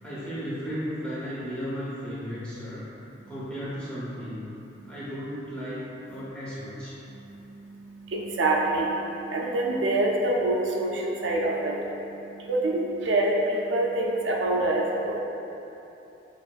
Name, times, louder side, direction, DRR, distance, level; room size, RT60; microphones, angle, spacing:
voice 1, 0.0-2.9 3.3-4.4 4.8-7.0, equal, 5° left, -10 dB, 0.9 m, -35 dB
voice 2, 8.1-8.9 9.3-11.8 12.5-15.2, right 2 dB, 80° right, -2 dB, 0.5 m, -25 dB
6.6 x 2.4 x 2.4 m, 3.0 s
head